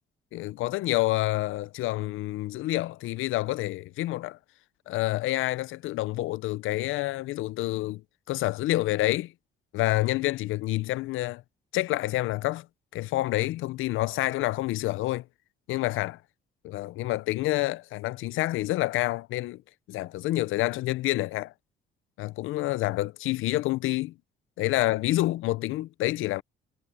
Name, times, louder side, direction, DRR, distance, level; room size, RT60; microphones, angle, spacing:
voice 1, 0.3-4.4 4.9-8.0 8.3-9.3 9.7-11.4 11.7-12.7 12.9-15.2 15.7-16.2 16.6-19.6 19.9-21.5 22.2-24.1 24.6-26.4, left 17 dB, 85° left, 0.5 m, -28 dB
cardioid pair, 90°, 20 cm